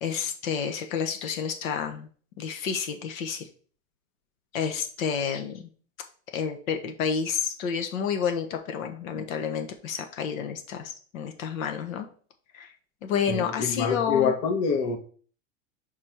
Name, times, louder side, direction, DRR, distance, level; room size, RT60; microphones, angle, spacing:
voice 1, 0.0-2.1 2.4-3.5 4.5-5.7 6.3-12.1 12.5-12.7 13.0-14.3, left 7 dB, 75° left, 1.3 m, -30 dB
voice 2, 13.3-15.0, left 5 dB, 50° left, 1.2 m, -26 dB
4.9 x 4.3 x 5.8 m
supercardioid pair, 120°, 41 cm